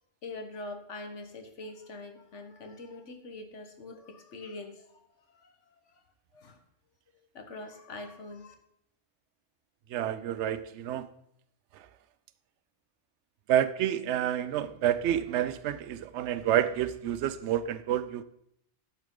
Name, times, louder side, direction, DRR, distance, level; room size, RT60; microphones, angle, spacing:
voice 1, 0.2-5.0 5.3-6.0 6.3-6.6 7.3-8.5, left 2 dB, 80° left, 5 dB, 1.6 m, -44 dB
voice 2, 9.9-11.1 13.5-18.2, right 11 dB, 75° right, 14 dB, 0.9 m, -29 dB
11.5 x 8.3 x 3.8 m, 0.75 s
omnidirectional pair, 1.2 m